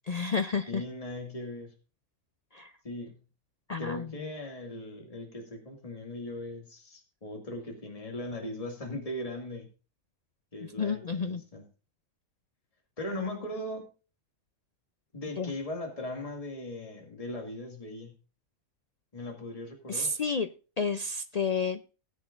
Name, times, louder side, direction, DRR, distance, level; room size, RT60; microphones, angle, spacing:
voice 1, 0.1-0.8 2.5-2.7 3.7-4.1 10.8-11.4 15.4-15.5 19.9-20.5 20.8-21.9, left 4 dB, 80° left, 9 dB, 0.3 m, -30 dB
voice 2, 0.7-1.7 2.8-3.2 3.8-9.7 10.5-11.7 13.0-13.9 15.1-18.1 19.1-20.2, left 1 dB, 25° left, 2 dB, 2.2 m, -39 dB
18.0 x 8.1 x 2.5 m, 0.34 s
omnidirectional pair, 1.5 m